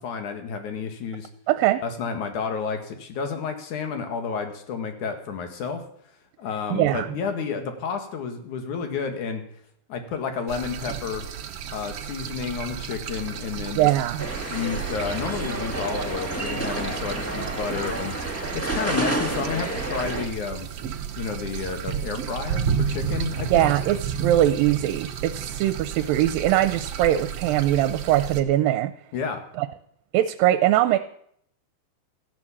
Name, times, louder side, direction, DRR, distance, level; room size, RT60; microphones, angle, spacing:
voice 1, 0.0-1.3 1.8-5.8 6.4-9.4 9.9-11.3 11.7-13.9 14.5-18.1 18.5-20.7 21.2-23.7 29.1-29.4, left 6 dB, 60° left, 6 dB, 3.1 m, -31 dB
voice 2, 1.5-1.8 6.7-7.1 13.8-14.3 23.5-28.9 29.6-29.7 30.1-31.0, right 13 dB, 80° right, 11 dB, 2.4 m, -21 dB
sound 1, 10.5-28.4, right 8 dB, 65° right, 1.6 m, -32 dB
sound 2, 14.2-20.3, right 1 dB, 15° left, 0.5 m, -30 dB
15.0 x 10.5 x 7.4 m, 0.68 s
omnidirectional pair, 4.1 m